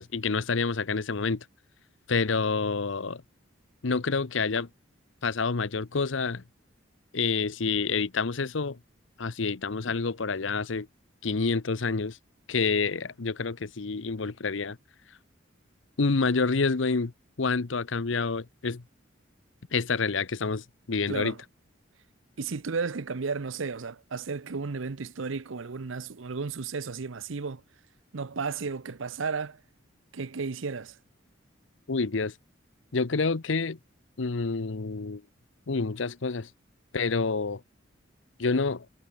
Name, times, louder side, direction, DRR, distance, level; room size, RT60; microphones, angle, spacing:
voice 1, 0.0-1.4 2.1-3.2 3.8-4.7 5.2-6.4 7.1-8.8 9.2-10.9 11.2-12.2 12.5-14.8 16.0-17.1 17.4-18.8 19.7-21.3 31.9-32.3 32.9-33.8 34.2-35.2 35.7-36.5 36.9-37.6 38.4-38.9, left 4 dB, 80° left, 0.8 m, -28 dB
voice 2, 21.1-21.4 22.4-27.6 28.1-29.6 30.1-31.0, right 4 dB, 90° right, 0.7 m, -33 dB
head